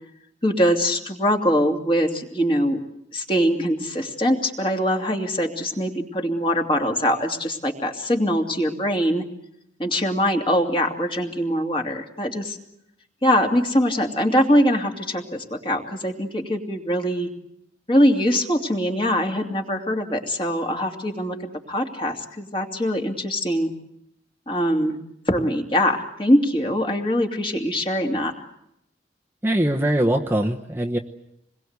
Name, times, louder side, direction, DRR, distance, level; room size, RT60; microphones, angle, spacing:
voice 1, 0.4-2.8 3.1-9.3 9.8-12.6 13.2-17.3 17.9-23.7 24.5-25.0 25.3-28.3, equal, 30° left, 2 dB, 2.7 m, -22 dB
voice 2, 29.4-31.0, right 1 dB, 15° right, 2 dB, 1.0 m, -22 dB
27.5 x 21.5 x 8.1 m, 0.81 s
head